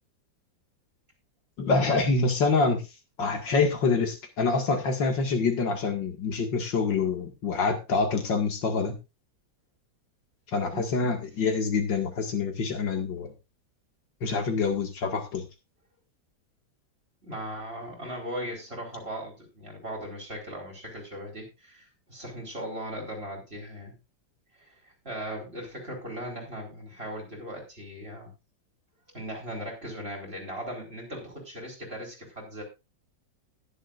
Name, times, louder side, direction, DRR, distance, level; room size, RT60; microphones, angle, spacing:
voice 1, 1.6-2.8 3.2-9.0 10.5-13.3 14.2-15.4, left 4 dB, 80° left, 4 dB, 2.7 m, -26 dB
voice 2, 10.7-11.1 17.2-24.0 24.6-28.3 29.1-32.6, equal, 30° right, 0 dB, 4.6 m, -38 dB
20.0 x 7.6 x 2.5 m, 0.26 s
omnidirectional pair, 1.9 m